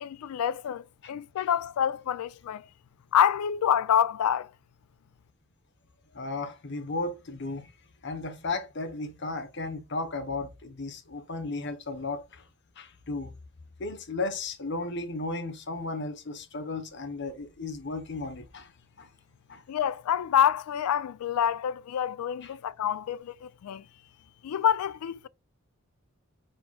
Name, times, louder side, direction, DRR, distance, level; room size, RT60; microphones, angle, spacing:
voice 1, 0.0-2.6 3.1-4.5 19.7-23.8 24.4-25.3, left 9 dB, 90° left, 0.3 m, -27 dB
voice 2, 6.1-7.7 8.0-12.2 12.8-13.3 13.8-18.7 19.0-19.1 19.5-19.6 22.4-22.5, left 3 dB, 55° left, 0.9 m, -34 dB
4.4 x 4.3 x 2.3 m
head